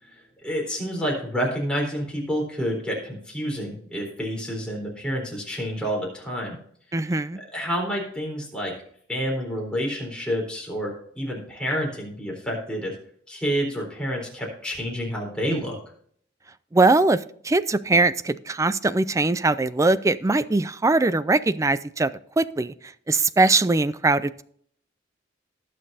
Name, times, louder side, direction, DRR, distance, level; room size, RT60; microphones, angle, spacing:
voice 1, 0.0-6.6 7.4-8.7 9.1-12.9 13.3-15.8, equal, 5° left, -2 dB, 3.9 m, -29 dB
voice 2, 6.9-7.4 16.7-17.2 17.4-22.1 22.4-22.7 23.1-24.4, right 3 dB, 15° right, 15 dB, 0.4 m, -21 dB
19.5 x 6.6 x 2.7 m, 0.62 s
head